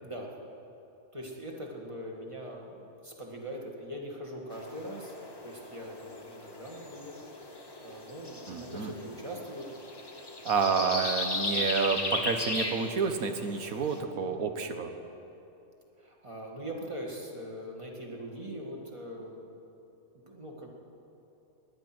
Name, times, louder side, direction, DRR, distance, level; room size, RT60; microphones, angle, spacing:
voice 1, 1.1-5.2 5.4-7.2 7.8-9.7 16.0-19.5 20.3-20.7, equal, 20° right, -1 dB, 2.0 m, -41 dB
sound 1, 4.5-14.0, left 2 dB, 20° left, 1.1 m, -37 dB
voice 2, 8.5-8.9 10.4-14.9, right 5 dB, 85° right, 6 dB, 1.5 m, -29 dB
19.5 x 11.0 x 6.1 m, 3.0 s
omnidirectional pair, 1.5 m